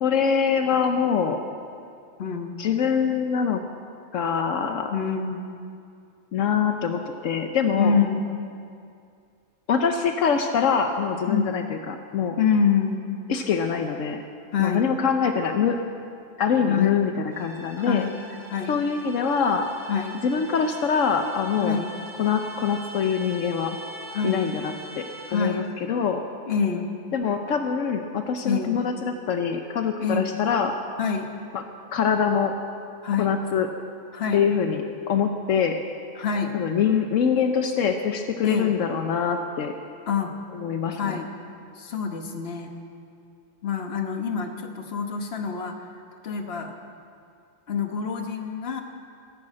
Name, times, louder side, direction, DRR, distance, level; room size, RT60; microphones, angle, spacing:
voice 1, 0.0-1.4 2.6-3.6 4.1-4.9 6.3-8.0 9.7-12.4 13.3-14.2 14.6-15.8 16.4-18.1 18.7-19.7 20.2-21.8 22.2-23.8 24.2-25.0 25.3-26.2 27.1-30.7 31.5-31.6 31.9-32.5 33.2-33.7 34.3-35.8 36.5-39.7 40.5-41.2, left 6 dB, 80° left, 5 dB, 1.1 m, -24 dB
voice 2, 2.2-2.6 4.9-5.4 7.8-8.4 11.3-11.5 12.4-13.2 14.5-14.9 16.7-17.1 17.8-18.2 18.5-18.8 19.9-20.2 21.6-22.0 24.1-24.5 25.3-25.7 26.5-27.0 28.4-28.8 30.0-30.4 31.0-31.3 33.0-33.3 34.1-34.5 36.2-36.6 38.4-38.7 40.1-40.3 41.0-41.3 41.7-42.7 43.6-45.8 46.2-46.8 47.7-48.8, left 6 dB, 55° left, 4 dB, 1.4 m, -26 dB
sound 1, 17.3-25.8, right 1 dB, 15° left, 2.6 m, -42 dB
15.0 x 12.0 x 7.6 m, 2.4 s
omnidirectional pair, 1.3 m